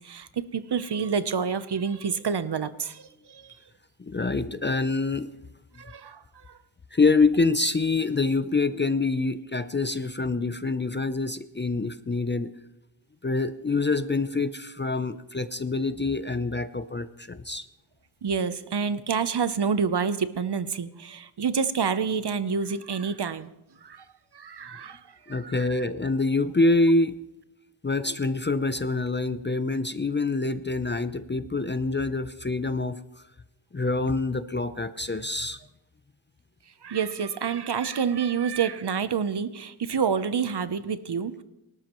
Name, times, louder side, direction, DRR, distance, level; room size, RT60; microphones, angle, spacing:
voice 1, 0.0-3.6 5.8-6.6 18.2-23.5 23.8-24.1 24.3-25.7 36.8-41.4, right 6 dB, 55° right, 13 dB, 0.8 m, -28 dB
voice 2, 4.0-5.3 6.9-12.5 13.2-17.7 25.3-27.2 27.8-33.2 33.7-35.6, left 3 dB, 25° left, 12 dB, 0.5 m, -26 dB
23.5 x 12.5 x 3.0 m, 0.92 s
wide cardioid pair, 80°, 49 cm